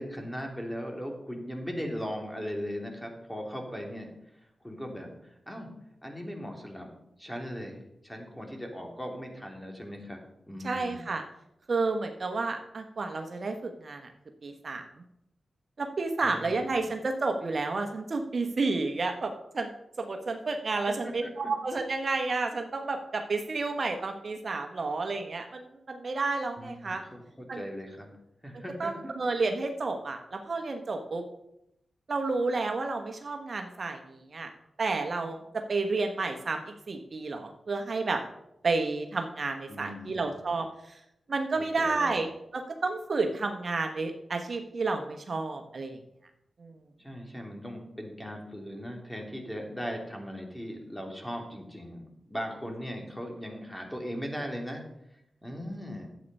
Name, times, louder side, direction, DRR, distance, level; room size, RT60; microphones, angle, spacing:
voice 1, 0.0-4.1 4.6-5.7 6.0-6.9 7.2-10.2 10.5-11.0 16.2-16.9 20.8-20.9 21.2-21.5 26.5-28.1 28.4-29.1 39.7-40.2 41.5-42.2 47.0-52.0 52.3-54.8 55.1-56.1, equal, 10° left, 2 dB, 3.1 m, -38 dB
voice 2, 10.6-11.2 11.7-14.1 14.4-14.8 15.8-27.0 27.5-27.6 28.8-31.2 32.1-34.5 34.8-38.2 38.6-41.0 41.3-46.0 46.6-46.7, right 3 dB, 55° right, 5 dB, 1.2 m, -31 dB
10.5 x 8.3 x 5.5 m, 0.82 s
cardioid pair, 50°, 0 cm